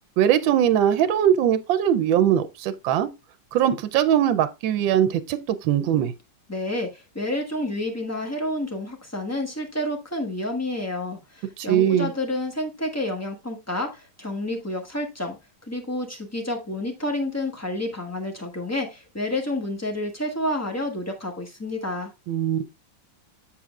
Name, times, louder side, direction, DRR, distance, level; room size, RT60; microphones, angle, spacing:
voice 1, 0.2-3.1 3.5-6.1 11.6-12.1 22.3-22.6, right 10 dB, 80° right, 1.4 m, -21 dB
voice 2, 6.5-15.4 15.6-22.1, left 1 dB, 10° left, 0.9 m, -29 dB
7.5 x 7.3 x 2.3 m
omnidirectional pair, 2.1 m